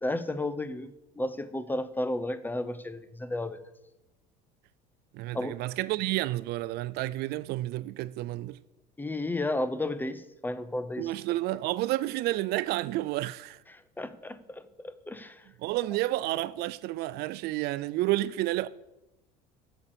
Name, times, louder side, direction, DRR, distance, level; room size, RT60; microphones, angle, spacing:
voice 1, 0.0-3.6 5.3-5.6 9.0-11.1 13.7-15.5, left 1 dB, 10° left, 0.6 m, -33 dB
voice 2, 5.1-8.6 11.0-13.6 15.6-18.7, right 16 dB, 60° right, 0.4 m, -30 dB
8.4 x 6.9 x 6.8 m
supercardioid pair, 105°, 19 cm